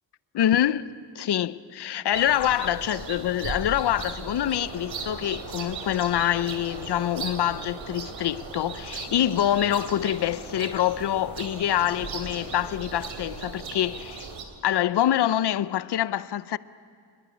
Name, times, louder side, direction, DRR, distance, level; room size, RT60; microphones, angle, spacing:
voice 1, 0.3-14.3 14.6-16.6, left 11 dB, 65° left, 0.7 m, -25 dB
sound 1, 2.1-14.4, right 5 dB, 85° right, 3.3 m, -37 dB
27.5 x 22.5 x 9.7 m
wide cardioid pair, 175°, 44 cm